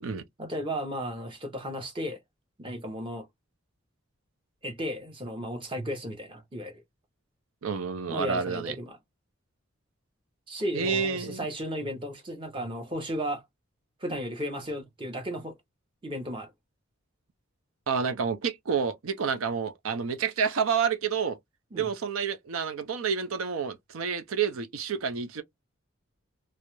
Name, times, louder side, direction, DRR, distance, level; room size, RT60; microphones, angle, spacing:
voice 1, 0.4-2.2 2.6-3.3 4.6-6.7 8.1-9.0 10.5-13.4 14.0-15.6 16.0-16.5 21.7-21.9, equal, 25° right, 0.7 m, -34 dB
voice 2, 7.6-8.7 10.7-11.5 17.9-21.4 21.7-25.4, right 6 dB, 85° right, 0.5 m, -29 dB
2.3 x 2.0 x 2.9 m
head